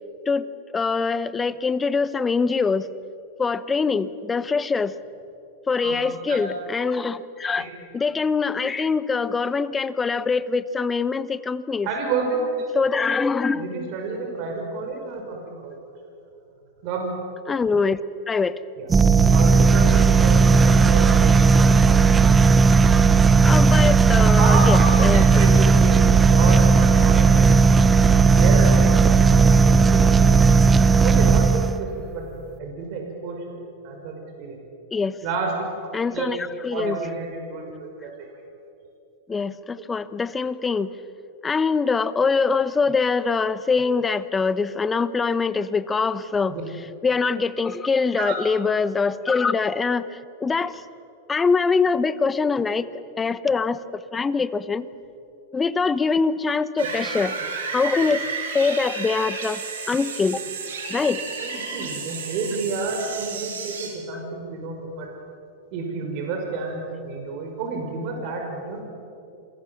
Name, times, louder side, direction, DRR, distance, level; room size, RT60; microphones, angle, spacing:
voice 1, 0.7-2.9 3.4-4.9 5.7-7.7 7.9-11.9 12.7-13.7 17.5-18.0 18.3-18.6 23.4-25.7 34.9-35.2 35.9-36.4 36.6-37.0 39.3-40.9 41.4-46.5 47.0-50.8 51.3-52.9 53.2-54.9 55.5-57.3 57.7-58.2 58.5-59.6 59.9-60.4 60.9-61.2, left 4 dB, 15° left, 15 dB, 1.0 m, -23 dB
voice 2, 11.8-12.4 13.5-15.8 16.8-17.1 18.8-22.0 24.4-26.0 26.3-27.4 28.0-29.2 29.5-30.4 31.0-32.3 32.6-33.6 33.8-34.6 35.2-35.6 36.1-36.3 36.7-38.3 46.5-46.6 48.2-48.4 56.8-56.9 61.0-61.1 61.4-65.1 65.7-68.8, right 4 dB, 55° right, 2 dB, 5.9 m, -30 dB
sound 1, 18.9-31.9, right 4 dB, 20° right, 0.9 m, -15 dB
sound 2, 56.8-63.9, right 5 dB, 80° right, 6.7 m, -32 dB
28.5 x 21.5 x 7.3 m, 2.7 s
hypercardioid pair, 110°, 0 cm